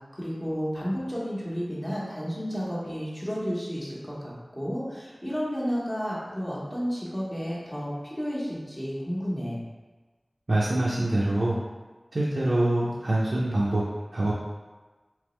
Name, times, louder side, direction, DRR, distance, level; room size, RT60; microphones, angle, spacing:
voice 1, 0.0-9.6, equal, 15° left, -6 dB, 1.1 m, -32 dB
voice 2, 10.5-11.6 12.1-13.8 14.1-14.3, right 1 dB, 70° right, -6 dB, 0.5 m, -24 dB
3.5 x 2.9 x 3.2 m, 1.3 s
wide cardioid pair, 60°, 0 cm